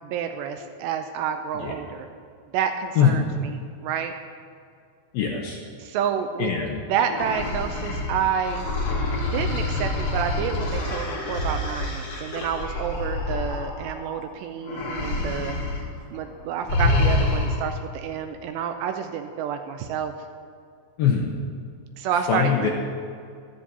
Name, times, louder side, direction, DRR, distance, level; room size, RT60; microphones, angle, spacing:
voice 1, 0.0-2.1 2.5-4.1 5.8-6.5 6.9-8.6 9.3-15.6 16.1-20.1 22.0-22.7, right 8 dB, 85° right, 6 dB, 2.6 m, -29 dB
voice 2, 5.1-5.6 6.4-6.8 21.0-21.4 22.3-22.7, left 7 dB, 80° left, -1 dB, 2.2 m, -22 dB
sound 1, 7.0-14.2 14.6-15.9 16.1-16.3 16.7-17.8, left 2 dB, 50° left, 1.7 m, -27 dB
14.5 x 13.0 x 2.9 m, 2.3 s
omnidirectional pair, 5.2 m